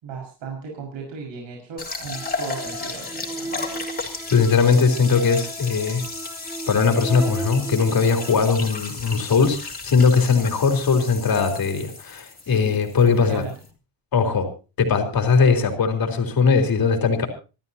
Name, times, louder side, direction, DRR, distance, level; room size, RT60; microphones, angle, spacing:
voice 1, 0.0-3.8 12.4-12.8 13.1-13.5, right 5 dB, 75° right, 0 dB, 5.8 m, -36 dB
sound 1, 1.8-13.7, left 3 dB, 20° left, 3.9 m, -35 dB
sound 2, 2.1-8.4, right 2 dB, 5° right, 1.4 m, -36 dB
voice 2, 4.3-6.0 6.7-13.5 14.1-14.5 14.8-17.3, left 5 dB, 50° left, 4 dB, 3.9 m, -19 dB
27.0 x 13.5 x 2.9 m, 0.33 s
wide cardioid pair, 155°, 45 cm